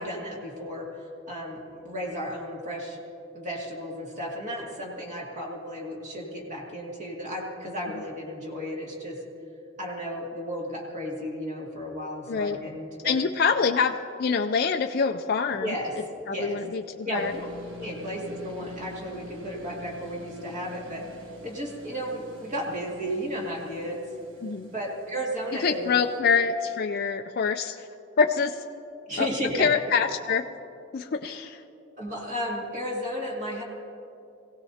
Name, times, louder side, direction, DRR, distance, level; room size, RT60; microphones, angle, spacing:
voice 1, 0.0-3.0 3.3-9.2 9.8-13.2 15.5-15.9 16.3-16.6 17.0-17.5 17.7-21.0 21.4-24.0 24.7-26.2 29.1-29.7 32.0-33.6, equal, 35° right, -3 dB, 2.2 m, -33 dB
voice 2, 12.3-12.6 13.0-15.7 16.3-17.3 24.4-24.7 25.6-27.9 28.2-28.6 29.2-29.3 29.5-30.4 30.9-31.6, left 5 dB, 50° left, 5 dB, 0.4 m, -25 dB
sound 1, 17.1-26.2, left 1 dB, 65° right, 1.4 m, -47 dB
22.5 x 17.0 x 2.8 m, 2.8 s
head